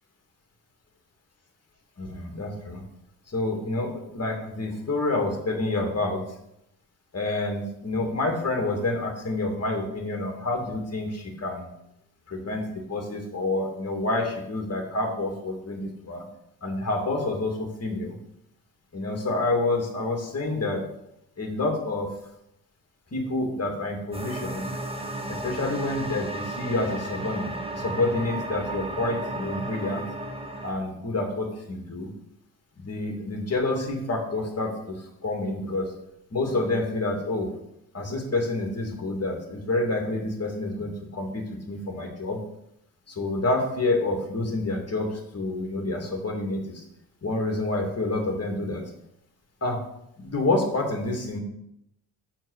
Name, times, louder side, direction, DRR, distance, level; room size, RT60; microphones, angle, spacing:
voice 1, 2.0-2.8 3.3-6.2 7.1-11.7 12.3-16.2 16.6-18.1 18.9-20.8 21.4-22.1 23.1-24.6 25.3-30.0 30.6-32.1 32.8-35.0 35.2-35.9 36.3-37.5 37.9-42.4 43.1-46.8 47.2-48.8 49.6-49.9 50.2-51.4, left 2 dB, 35° left, 2 dB, 2.4 m, -28 dB
sound 1, 24.1-30.7, right 1 dB, 15° right, 1.8 m, -34 dB
7.2 x 4.7 x 6.6 m, 0.78 s
supercardioid pair, 55°, 44 cm